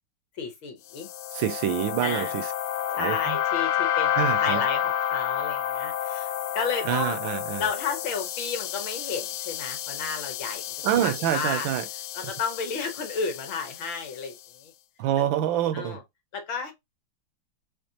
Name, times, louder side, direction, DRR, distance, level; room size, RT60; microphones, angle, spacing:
voice 1, 0.4-1.1 2.0-2.3 3.0-7.2 7.6-10.6 11.0-11.7 12.2-14.7 15.7-16.0 16.3-16.7, left 5 dB, 65° left, 1.7 m, -32 dB
sound 1, 0.9-14.3, left 10 dB, 85° left, 1.5 m, -30 dB
voice 2, 1.3-2.5 2.9-3.4 4.1-4.7 6.8-7.7 10.8-11.9 12.2-12.3 15.0-16.0, right 11 dB, 75° right, 1.2 m, -27 dB
5.2 x 3.4 x 2.8 m
omnidirectional pair, 2.4 m